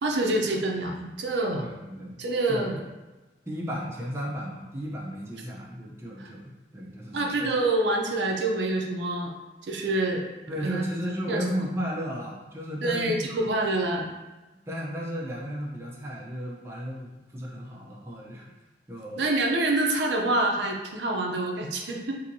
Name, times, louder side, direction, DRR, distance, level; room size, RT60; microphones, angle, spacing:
voice 1, 0.0-1.7 2.2-2.8 6.2-6.3 7.1-9.3 9.6-10.2 10.6-10.8 11.3-11.4 12.8-14.1 19.2-22.3, right 2 dB, 75° right, 1 dB, 0.5 m, -26 dB
voice 2, 1.6-2.7 3.5-7.5 10.5-13.4 14.7-18.5 18.9-19.3, equal, 15° right, -4 dB, 0.5 m, -34 dB
4.2 x 2.7 x 2.6 m, 1.1 s
head